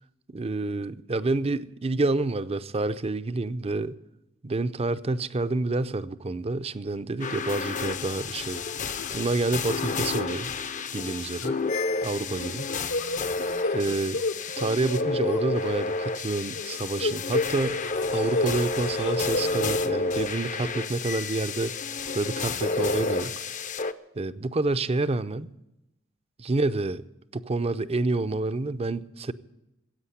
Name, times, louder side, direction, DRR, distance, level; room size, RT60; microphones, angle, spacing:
voice 1, 0.3-4.0 4.4-8.6 9.1-10.5 10.9-11.6 12.0-12.6 13.7-14.2 14.6-17.8 18.1-21.8 22.1-23.3 24.2-25.5 26.4-27.0 27.3-29.3, right 2 dB, 30° right, 0.6 m, -28 dB
sound 1, 7.2-23.9, left 3 dB, 40° left, 0.6 m, -30 dB
sound 2, 8.8-9.2 9.6-9.9 10.1-10.2 11.4-12.0 12.4-15.4 16.6-18.6 18.9-19.7, left 3 dB, 65° left, 0.9 m, -32 dB
16.0 x 8.6 x 9.8 m
head